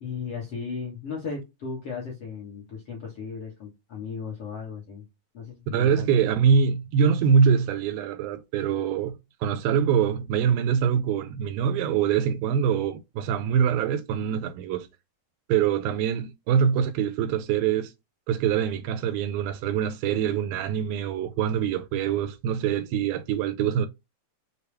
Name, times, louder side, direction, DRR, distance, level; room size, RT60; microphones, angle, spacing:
voice 1, 0.0-5.0 5.3-6.1, left 5 dB, 60° left, 1.7 m, -36 dB
voice 2, 5.7-14.9 15.5-17.9 18.3-23.9, right 7 dB, 80° right, 2.2 m, -24 dB
6.7 x 2.3 x 3.2 m
omnidirectional pair, 4.2 m